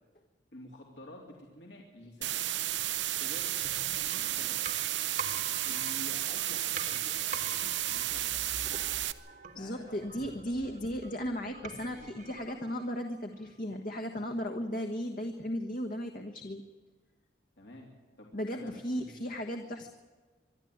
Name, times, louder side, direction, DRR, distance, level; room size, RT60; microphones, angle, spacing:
voice 1, 0.5-2.4 3.1-4.6 5.6-8.3 9.5-10.7 17.6-17.9 18.2-19.1, left 1 dB, 70° left, -1 dB, 3.4 m, -50 dB
sound 1, 2.2-9.1, right 13 dB, 90° right, 0.9 m, -32 dB
sound 2, 3.6-13.3 13.7-13.8, right 4 dB, 45° right, 1.3 m, -46 dB
voice 2, 9.5-16.6 18.3-19.9, equal, 50° left, 5 dB, 1.4 m, -36 dB
25.0 x 12.0 x 9.5 m, 1.4 s
head